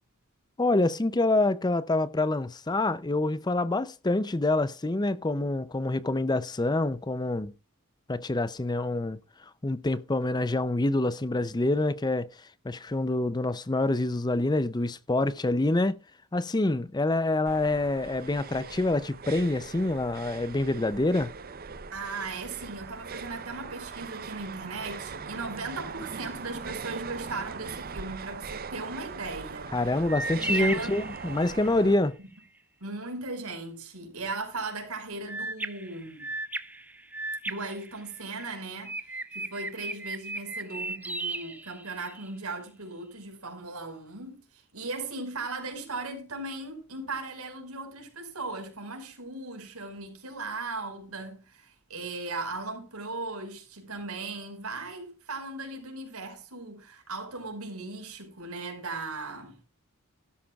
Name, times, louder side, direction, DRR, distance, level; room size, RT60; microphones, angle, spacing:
voice 1, 0.6-7.5 8.1-12.3 12.6-16.0 16.3-21.3 29.7-32.2, left 2 dB, 20° left, 0.5 m, -26 dB
sound 1, 17.5-32.0, right 5 dB, 40° right, 0.7 m, -41 dB
voice 2, 21.9-29.7 30.3-31.0 32.2-32.3 32.8-36.2 37.4-39.0 39.3-59.6, right 3 dB, 80° right, 5.1 m, -37 dB
sound 2, 30.1-31.8 35.3-38.4 38.8-42.3, right 2 dB, 5° right, 0.9 m, -35 dB
16.0 x 12.5 x 2.4 m
head